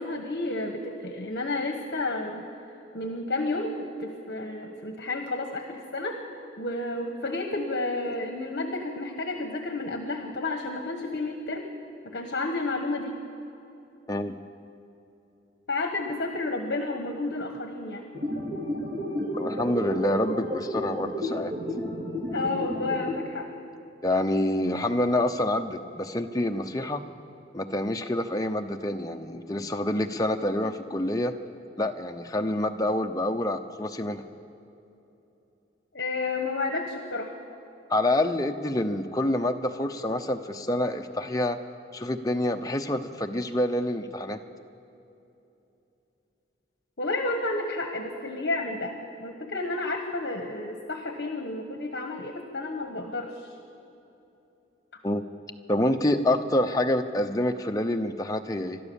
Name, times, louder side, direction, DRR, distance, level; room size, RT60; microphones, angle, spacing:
voice 1, 0.0-2.4 2.9-6.2 6.6-11.7 12.0-13.1 15.7-18.1 22.3-23.5 35.9-37.3 47.0-48.9 49.2-53.5, left 2 dB, 65° left, 4 dB, 1.3 m, -31 dB
sound 1, 18.1-23.1, left 1 dB, 60° right, 2.8 m, -32 dB
voice 2, 19.4-21.5 24.0-27.0 27.5-31.3 31.8-34.2 37.9-41.6 41.9-44.4 55.0-55.2 55.7-58.8, left 1 dB, 20° left, 5 dB, 0.8 m, -27 dB
29.5 x 12.5 x 7.1 m, 2.9 s
head